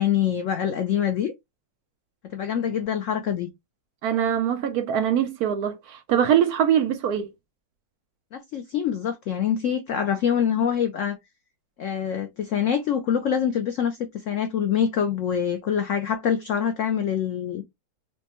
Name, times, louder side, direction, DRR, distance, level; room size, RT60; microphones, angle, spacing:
voice 1, 0.0-1.3 2.2-3.5 8.3-11.2 11.8-17.6, left 8 dB, 80° left, 0.7 m, -25 dB
voice 2, 4.0-7.3, right 9 dB, 70° right, 1.0 m, -23 dB
5.1 x 2.1 x 2.8 m
omnidirectional pair, 1.9 m